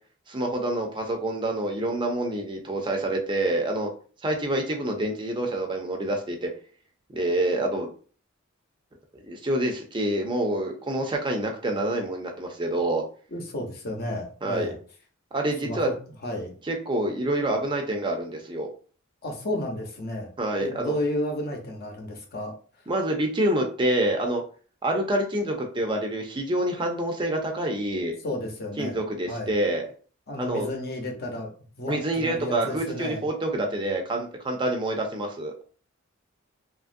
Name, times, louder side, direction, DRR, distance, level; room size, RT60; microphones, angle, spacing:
voice 1, 0.3-3.9 4.2-6.5 7.1-7.9 9.1-13.0 14.4-14.7 15.3-15.9 16.6-18.7 20.4-21.0 22.9-24.4 24.8-28.2 28.8-29.9 30.4-30.7 31.9-35.6, right 1 dB, 25° right, 3 dB, 0.4 m, -27 dB
voice 2, 13.3-14.7 15.6-15.9 16.2-16.5 19.2-20.3 20.6-22.5 28.2-29.0 29.3-29.5 30.3-31.5 31.8-33.2, left 1 dB, 50° left, 1 dB, 0.8 m, -32 dB
2.9 x 2.5 x 2.5 m, 0.41 s
head